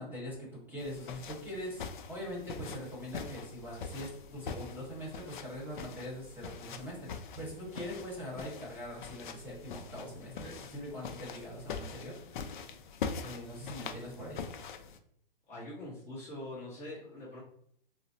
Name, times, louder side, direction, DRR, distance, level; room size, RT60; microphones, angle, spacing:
voice 1, 0.0-12.1 13.2-14.4, equal, 5° right, -5 dB, 1.0 m, -42 dB
sound 1, 0.8-15.0, left 6 dB, 55° left, 0.4 m, -43 dB
voice 2, 15.5-17.4, left 1 dB, 20° left, -7 dB, 0.7 m, -43 dB
3.9 x 2.0 x 2.7 m, 0.68 s
hypercardioid pair, 140°, 29 cm